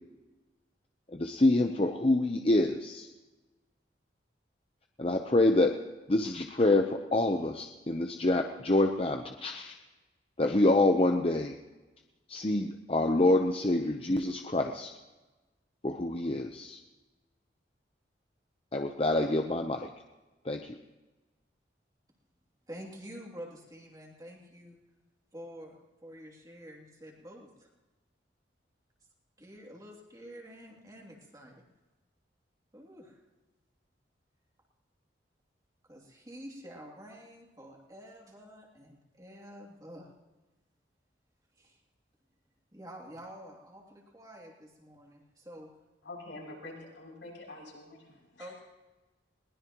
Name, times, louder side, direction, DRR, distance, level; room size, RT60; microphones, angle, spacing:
voice 1, 1.1-3.1 5.0-5.7 6.1-9.7 10.4-11.6 12.3-14.9 15.8-16.8 18.7-19.9 20.5-20.7, left 2 dB, 30° left, 4 dB, 0.8 m, -26 dB
voice 2, 22.7-24.8 25.3-25.8 26.0-27.5 29.4-31.6 32.7-33.1 35.9-40.1 41.6-41.7 42.7-45.7 48.4-48.6, equal, 20° right, -1 dB, 2.8 m, -48 dB
voice 3, 46.0-48.5, left 2 dB, 80° left, -3 dB, 6.6 m, -46 dB
21.5 x 19.5 x 3.0 m, 1.2 s
head